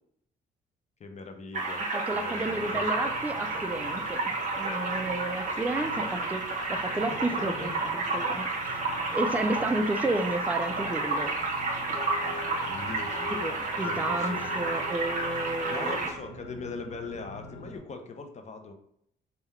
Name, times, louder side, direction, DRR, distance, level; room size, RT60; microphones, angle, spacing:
voice 1, 1.0-1.8 2.1-2.9 7.1-7.9 12.7-13.4 13.8-14.4 15.6-18.7, left 3 dB, 35° left, 5 dB, 0.6 m, -41 dB
sound 1, 1.5-16.1, right 3 dB, 40° right, 1.1 m, -31 dB
voice 2, 1.9-6.4 6.7-7.7 8.1-8.8 9.1-11.3 13.4-16.0, right 2 dB, 10° right, 7 dB, 0.3 m, -31 dB
sound 2, 2.3-17.8, left 2 dB, 85° left, 1.1 m, -45 dB
3.7 x 2.2 x 4.2 m, 0.70 s
cardioid pair, 90°, 20 cm